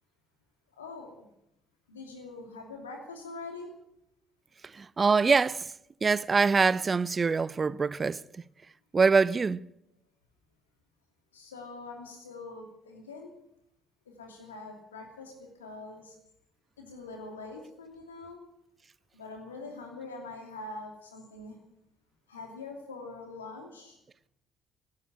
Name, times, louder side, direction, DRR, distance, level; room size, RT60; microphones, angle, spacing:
voice 1, 0.8-1.3 1.9-3.7 11.3-13.3 14.2-16.2 16.8-18.4 19.1-21.6 22.3-24.0, left 3 dB, 85° left, 2.8 m, -44 dB
voice 2, 4.8-5.6 6.0-8.2 8.9-9.6, right 4 dB, 35° right, 0.6 m, -24 dB
15.5 x 11.0 x 8.5 m
hypercardioid pair, 50°, 0 cm